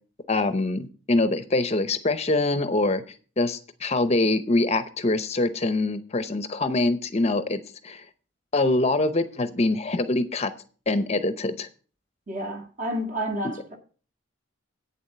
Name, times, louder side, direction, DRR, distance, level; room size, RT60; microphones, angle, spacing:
voice 1, 0.3-3.0 3.4-8.0 8.5-10.5 10.9-11.7, left 2 dB, 30° left, 0.7 m, -24 dB
voice 2, 12.3-13.8, equal, 40° right, 1.8 m, -30 dB
8.7 x 7.2 x 6.7 m
head